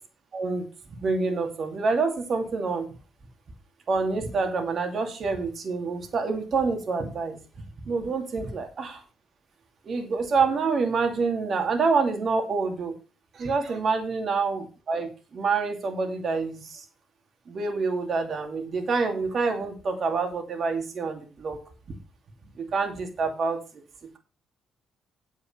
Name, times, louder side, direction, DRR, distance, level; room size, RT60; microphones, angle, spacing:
voice 1, 0.3-0.7 1.0-2.9 3.9-7.4 7.8-9.0 9.9-13.0 13.3-16.8 17.5-21.6 22.6-23.6 24.0-24.2, right 4 dB, 50° right, 5 dB, 2.6 m, -27 dB
8.6 x 7.9 x 5.7 m, 0.34 s
hypercardioid pair, 45°, 0 cm